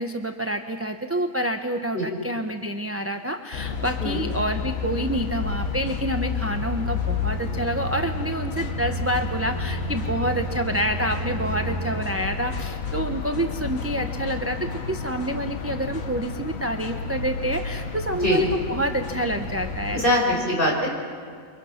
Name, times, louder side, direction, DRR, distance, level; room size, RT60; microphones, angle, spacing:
voice 1, 0.0-20.0 20.5-20.7, right 1 dB, 10° right, 5 dB, 0.7 m, -28 dB
sound 1, 3.5-20.2, left 6 dB, 65° left, 1.6 m, -31 dB
Bowed string instrument, 6.6-12.3, right 4 dB, 45° right, 6.5 m, -34 dB
voice 2, 19.9-20.9, left 1 dB, 35° left, -2 dB, 6.2 m, -22 dB
29.0 x 24.0 x 5.8 m, 2.2 s
omnidirectional pair, 1.6 m